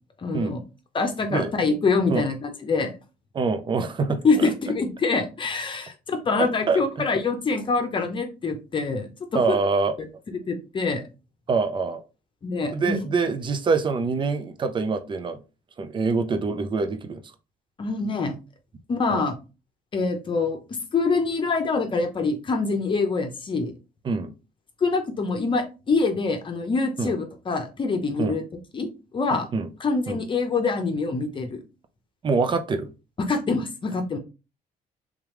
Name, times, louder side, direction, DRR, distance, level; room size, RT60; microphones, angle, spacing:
voice 1, 0.2-0.6 0.9-2.9 4.2-9.6 10.5-11.0 12.4-13.0 17.8-18.3 18.9-19.3 19.9-20.6 20.9-23.7 24.8-28.4 28.7-28.9 29.1-29.5 29.8-31.6 33.2-34.2, left 4 dB, 35° left, 0.8 m, -25 dB
voice 2, 3.3-4.5 6.4-6.8 9.3-10.0 11.5-12.0 12.7-15.4 15.8-17.2 19.1-19.3 24.0-24.3 27.0-27.1 28.2-28.4 28.8-28.9 29.3-29.7 30.1-30.2 32.2-32.9, right 4 dB, 30° right, 0.6 m, -25 dB
3.6 x 3.4 x 3.1 m
cardioid pair, 105°, 15 cm